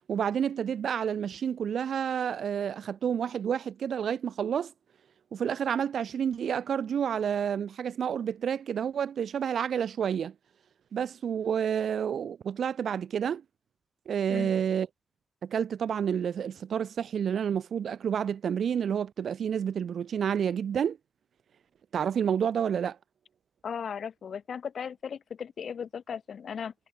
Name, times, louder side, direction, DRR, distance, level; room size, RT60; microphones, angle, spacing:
voice 1, 0.1-4.7 5.3-10.3 10.9-13.4 14.1-14.9 15.4-21.0 21.9-23.0, right 8 dB, 80° right, 3.1 m, -29 dB
voice 2, 23.6-26.7, left 7 dB, 75° left, 2.2 m, -36 dB
cardioid pair, 55°, 0 cm